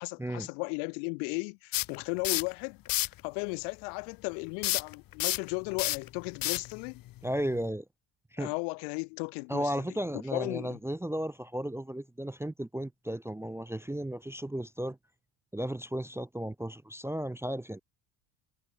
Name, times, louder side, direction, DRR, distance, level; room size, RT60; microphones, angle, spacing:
voice 1, 0.0-2.8 3.2-7.0 8.4-9.7 10.3-10.8, left 40 dB or more, 80° left, 1.1 m, -35 dB
sound 1, 1.7-2.5 2.9-3.2 4.6-7.7, left 15 dB, 45° left, 0.7 m, -31 dB
voice 2, 7.2-7.8 8.3-8.5 9.5-15.0 15.5-17.8, right 1 dB, 5° right, 0.5 m, -34 dB
supercardioid pair, 85°, 47 cm